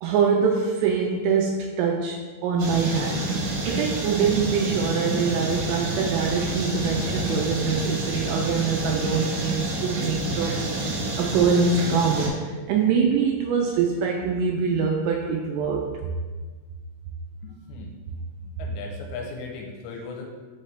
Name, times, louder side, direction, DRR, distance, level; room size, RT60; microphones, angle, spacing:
voice 1, 0.0-10.6 11.2-16.1, right 5 dB, 85° right, 1 dB, 2.5 m, -24 dB
sound 1, 2.6-12.3, right 2 dB, 65° right, 2.2 m, -28 dB
voice 2, 17.4-17.9 18.4-20.3, left 4 dB, 85° left, 1 dB, 2.7 m, -37 dB
5.8 x 5.4 x 3.2 m, 1.4 s
omnidirectional pair, 5.4 m